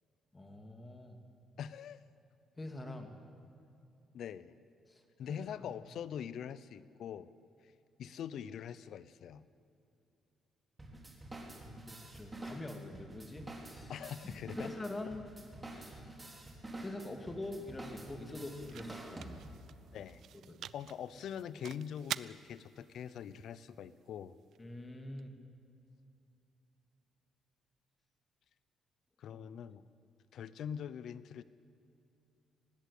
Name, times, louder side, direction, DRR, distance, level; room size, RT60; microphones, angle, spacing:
voice 1, 0.3-1.2 2.6-3.1 4.9-5.0 5.3-5.7 11.6-13.9 14.6-15.3 15.7-16.2 16.8-19.3 20.5-20.6 24.6-25.3 29.3-29.4, left 2 dB, 20° left, 5 dB, 2.5 m, -45 dB
voice 2, 1.6-2.0 4.1-4.5 5.2-7.3 8.0-9.4 13.9-14.7 19.9-20.2 20.7-24.4 29.2-29.8 30.3-31.4, left 8 dB, 70° left, 17 dB, 0.8 m, -43 dB
sound 1, 10.8-19.7, right 1 dB, 20° right, 3.9 m, -48 dB
sound 2, 17.1-25.2, right 10 dB, 70° right, 0.5 m, -49 dB
19.5 x 16.0 x 8.6 m, 2.7 s
cardioid pair, 90°, 0 cm